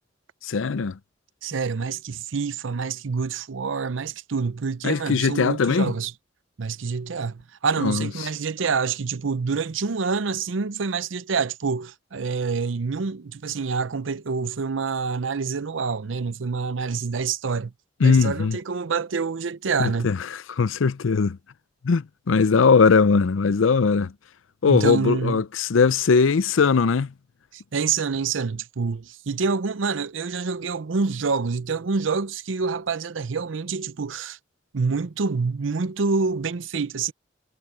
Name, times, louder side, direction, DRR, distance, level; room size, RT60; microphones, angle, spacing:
voice 1, 0.4-1.0 4.8-5.9 7.8-8.1 18.0-18.6 19.8-21.4 21.8-24.1 24.6-27.1, left 5 dB, 90° left, 0.5 m, -20 dB
voice 2, 1.4-6.1 6.6-17.7 18.0-20.1 24.7-25.4 27.5-34.4 34.7-37.1, right 5 dB, 75° right, 0.6 m, -27 dB
head